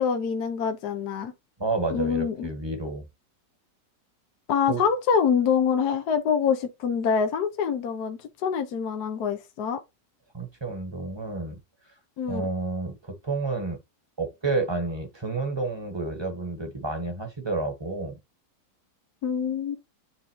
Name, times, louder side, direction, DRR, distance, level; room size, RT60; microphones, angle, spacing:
voice 1, 0.0-1.3 1.9-2.5 4.5-9.8 12.2-12.5 19.2-19.8, left 7 dB, 65° left, 1.3 m, -25 dB
voice 2, 1.6-3.0 4.7-4.8 10.3-11.6 12.3-13.8 14.2-18.2, right 3 dB, 15° right, 1.2 m, -30 dB
9.6 x 3.6 x 3.0 m
omnidirectional pair, 1.9 m